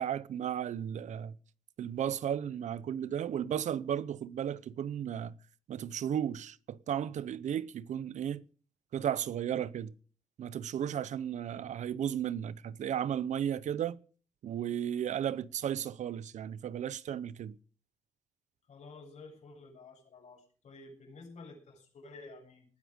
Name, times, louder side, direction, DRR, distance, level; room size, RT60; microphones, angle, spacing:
voice 1, 0.0-1.4 1.8-5.3 5.7-8.4 8.9-9.9 10.4-14.0 14.4-17.6, right 9 dB, 75° right, 0.7 m, -34 dB
voice 2, 18.7-22.7, left 3 dB, 70° left, 7.7 m, -51 dB
19.0 x 10.5 x 5.0 m
cardioid pair, 115°, 12 cm